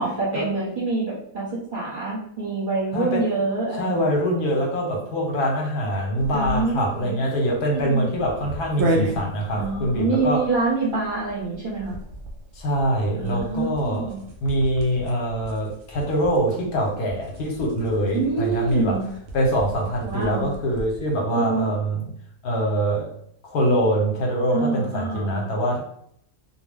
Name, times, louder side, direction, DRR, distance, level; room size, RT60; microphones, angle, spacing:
voice 1, 0.0-1.5 1.7-4.1 6.3-7.2 7.7-8.1 9.5-12.0 13.1-14.2 18.1-19.0 20.0-20.5 21.3-21.8 24.5-25.5, right 3 dB, 35° right, -8 dB, 1.0 m, -26 dB
voice 2, 2.9-3.3 3.8-10.5 12.6-14.1 14.4-19.0 19.3-22.1 22.4-23.1 23.4-25.8, equal, 75° left, 0 dB, 1.2 m, -24 dB
sound 1, 6.2-21.1, right 1 dB, 70° right, 0.6 m, -35 dB
2.6 x 2.2 x 3.2 m, 0.66 s
omnidirectional pair, 1.7 m